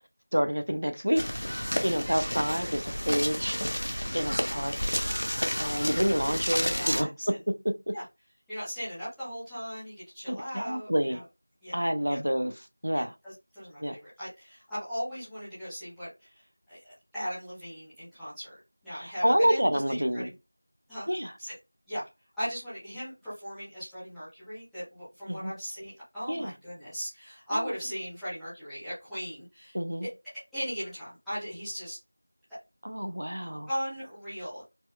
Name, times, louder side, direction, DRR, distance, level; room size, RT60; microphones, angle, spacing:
voice 1, 0.3-1.2 1.8-3.6 4.1-4.9 5.6-7.1 10.3-11.2 11.7-13.1 13.8-13.9 18.9-20.3 21.1-21.3 25.3-25.5 26.3-26.5 27.5-27.6 29.7-30.1 32.8-33.7, equal, 60° right, 0.5 m, -28 dB
sound 1, 1.1-7.0, equal, 50° left, 0.6 m, -31 dB
voice 2, 5.4-6.0 6.5-7.4 7.9-8.0 8.5-11.2 11.6-12.2 12.9-16.4 16.7-18.6 18.8-20.3 20.9-21.1 21.4-21.5 21.9-22.1 22.4-29.8 30.5-32.0 33.7-34.6, equal, ahead, 0.4 m, -38 dB
4.2 x 2.3 x 2.2 m
figure-of-eight pair, 180°, 0 cm